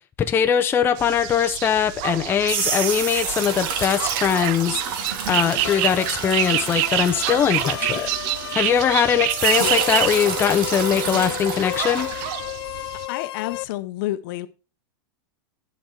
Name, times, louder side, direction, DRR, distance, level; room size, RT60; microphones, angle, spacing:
voice 1, 0.3-4.8 5.3-8.1 8.6-12.1, left 8 dB, 20° left, 0.6 m, -21 dB
sound 1, 1.0-13.1, right 17 dB, 45° right, 0.3 m, -28 dB
sound 2, 2.2-8.9 9.3-12.3, right 5 dB, 65° right, 2.2 m, -29 dB
sound 3, 5.6-13.6, left 14 dB, 75° left, 0.4 m, -33 dB
voice 2, 13.1-14.5, left 15 dB, 55° left, 0.8 m, -30 dB
10.5 x 5.3 x 4.6 m
supercardioid pair, 145°, 12 cm